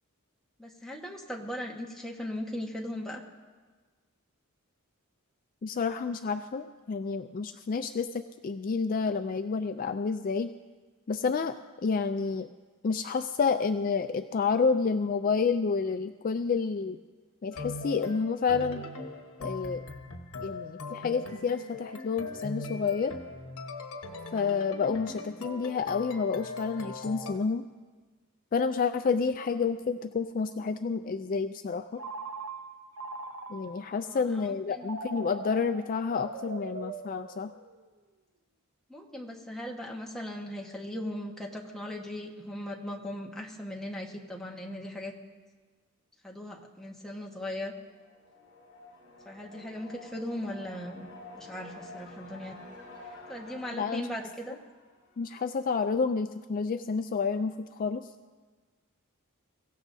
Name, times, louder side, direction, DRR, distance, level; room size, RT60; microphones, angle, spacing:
voice 1, 0.6-3.2 24.9-25.0 34.0-35.1 38.9-45.1 46.2-47.7 49.2-52.6 53.3-54.6, left 1 dB, ahead, -2 dB, 1.3 m, -38 dB
voice 2, 5.6-10.5 11.1-12.5 12.8-17.0 17.4-18.8 19.4-19.8 20.4-23.1 24.3-27.6 28.5-32.0 33.5-37.5 53.7-54.1 55.2-58.1, left 5 dB, 40° left, 9 dB, 0.3 m, -29 dB
sound 1, 17.5-27.3, left 3 dB, 90° left, 1.2 m, -40 dB
Telephone, 32.0-34.0 34.8-37.9, right 3 dB, 80° right, 1.0 m, -41 dB
sound 2, 47.8-55.6, left 2 dB, 65° left, 3.7 m, -49 dB
23.5 x 15.5 x 2.7 m, 1.4 s
head